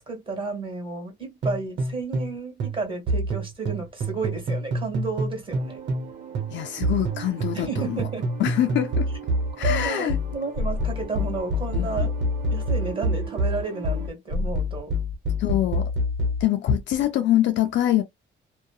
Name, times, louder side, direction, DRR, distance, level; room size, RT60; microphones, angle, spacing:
voice 1, 0.1-5.8 7.5-8.3 9.6-12.1 12.5-14.9, right 4 dB, 25° right, 1.7 m, -32 dB
sound 1, 1.4-2.3 2.6-6.1 6.3-16.4, equal, 65° right, 1.0 m, -26 dB
sound 2, 5.5-14.1, right 7 dB, 45° right, 1.1 m, -42 dB
voice 2, 6.5-8.0 8.4-9.1 9.6-10.2 11.7-12.1 15.4-15.9 16.4-18.0, left 11 dB, 70° left, 0.5 m, -24 dB
2.8 x 2.2 x 2.2 m
cardioid pair, 90°, 20 cm